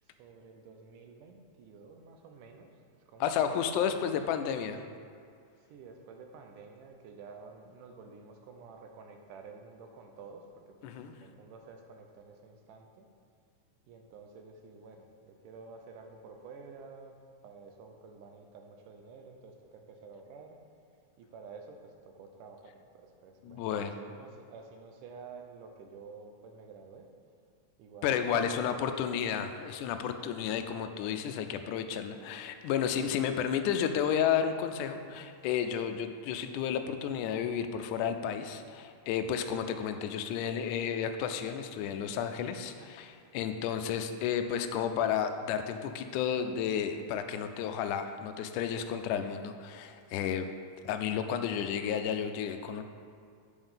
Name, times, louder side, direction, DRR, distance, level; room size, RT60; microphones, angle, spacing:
voice 1, 0.0-3.9 5.6-13.1 13.9-20.6 21.2-27.1 27.8-29.1, right 4 dB, 85° right, 4 dB, 2.3 m, -51 dB
voice 2, 3.2-4.8 10.8-11.1 23.4-23.9 28.0-50.5 50.9-52.8, left 8 dB, 85° left, 7 dB, 2.0 m, -32 dB
8.0 x 5.3 x 5.6 m, 2.3 s
omnidirectional pair, 3.6 m